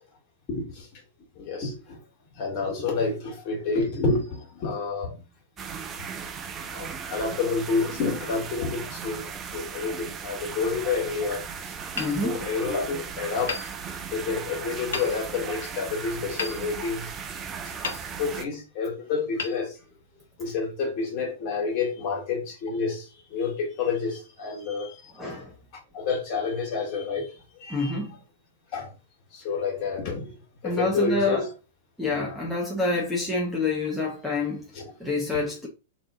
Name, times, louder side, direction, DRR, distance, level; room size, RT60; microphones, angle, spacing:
voice 1, 0.5-1.0 1.4-2.0 2.4-5.2 6.7-11.8 12.2-13.6 14.1-17.1 17.6-17.7 18.2-19.7 20.4-25.1 25.9-27.3 27.6-27.9 28.7-28.9 29.3-30.3 30.6-31.5 34.8-34.9, left 4 dB, 40° left, 1.9 m, -29 dB
sound 1, 5.6-18.5, right 6 dB, 25° right, 0.5 m, -37 dB
voice 2, 11.9-12.4 25.1-25.5 27.7-28.1 30.6-31.5 32.0-35.7, left 3 dB, ahead, 1.0 m, -27 dB
Hammer, 12.0-12.9 13.5-14.4 14.9-15.5 16.4-17.3 17.8-18.6 19.3-20.3, left 5 dB, 65° left, 1.0 m, -37 dB
3.5 x 2.9 x 3.7 m
figure-of-eight pair, 100°, 0 cm